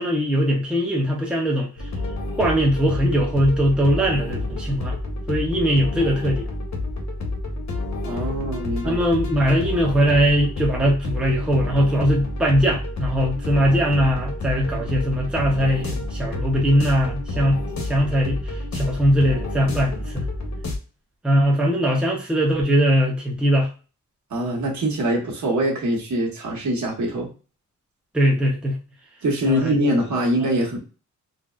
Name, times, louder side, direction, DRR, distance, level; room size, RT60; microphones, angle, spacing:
voice 1, 0.0-1.7 2.4-5.0 5.3-6.5 8.8-20.2 21.2-23.7 28.1-28.8 29.4-29.9 30.4-30.5, equal, 5° right, -1 dB, 0.5 m, -21 dB
sound 1, 1.8-20.8, left 2 dB, 65° left, 0.9 m, -29 dB
voice 2, 8.0-9.0 24.3-27.3 29.2-30.8, right 1 dB, 65° right, -1 dB, 1.2 m, -23 dB
3.9 x 2.0 x 2.4 m, 0.35 s
wide cardioid pair, 150°, 31 cm